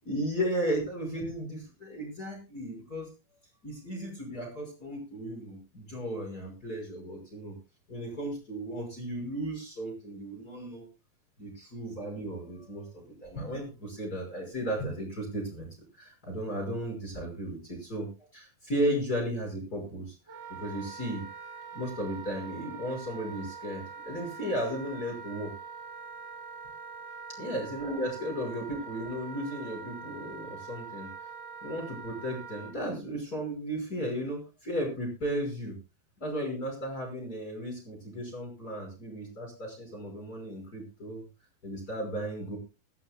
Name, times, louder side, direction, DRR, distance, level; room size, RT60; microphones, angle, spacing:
voice 1, 0.0-3.1 3.6-7.6 7.9-10.9 11.4-15.7 15.9-21.2 21.7-25.5 27.4-31.1 31.6-35.8 36.2-41.2 41.6-42.6, equal, 25° left, 1 dB, 6.1 m, -35 dB
Wind instrument woodwind instrument, 20.3-32.7, right 5 dB, 45° right, 4.3 m, -44 dB
22.5 x 14.0 x 2.3 m, 0.31 s
omnidirectional pair, 4.2 m